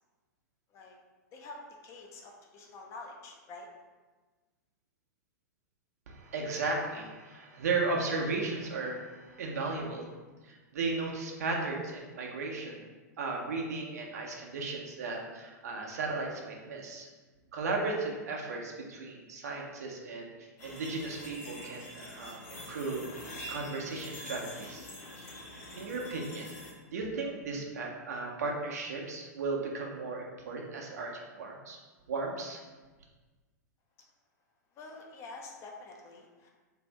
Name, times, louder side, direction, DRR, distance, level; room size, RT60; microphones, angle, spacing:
voice 1, 1.3-3.7 34.8-36.5, left 3 dB, 30° left, 0 dB, 0.5 m, -47 dB
voice 2, 6.1-10.1 10.4-12.8 13.2-17.1 17.5-20.3 20.6-24.9 25.2-25.3 25.8-26.5 26.9-31.8 32.1-32.6, right 3 dB, 60° right, 0 dB, 0.6 m, -35 dB
sound 1, 20.6-26.7, left 1 dB, 55° left, 0.9 m, -45 dB
2.6 x 2.5 x 3.2 m, 1.3 s
figure-of-eight pair, 100°, 10 cm